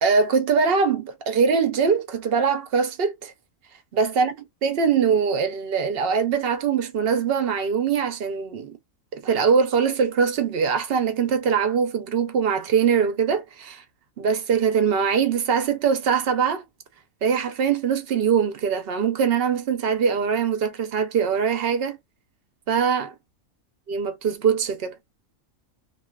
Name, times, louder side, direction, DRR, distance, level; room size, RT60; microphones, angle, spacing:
voice 1, 0.0-3.3 3.9-4.3 4.6-8.8 9.1-13.8 14.2-16.6 17.2-22.0 22.7-23.1 23.9-25.0, right 6 dB, 60° right, 0.6 m, -22 dB
2.5 x 2.3 x 2.2 m
omnidirectional pair, 1.5 m